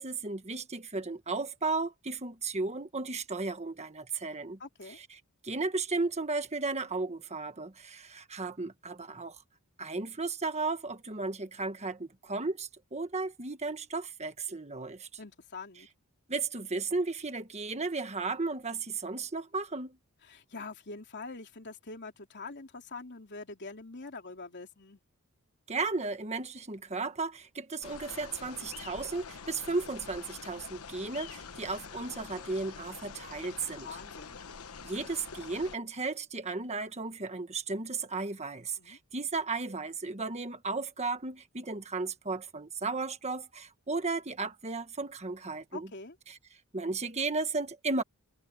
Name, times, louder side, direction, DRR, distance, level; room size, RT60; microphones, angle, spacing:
voice 1, 0.0-4.6 5.0-5.1 5.4-9.4 9.8-15.1 16.3-20.0 25.7-33.9 34.8-45.9 46.3-46.4 46.7-48.0, right 3 dB, 30° right, 1.5 m, -34 dB
voice 2, 4.6-5.0 15.2-15.9 20.2-25.0 33.8-34.4 38.8-39.0 45.7-46.2, left 3 dB, 50° left, 3.4 m, -44 dB
sound 1, 27.8-35.8, left 5 dB, 80° left, 1.1 m, -46 dB
head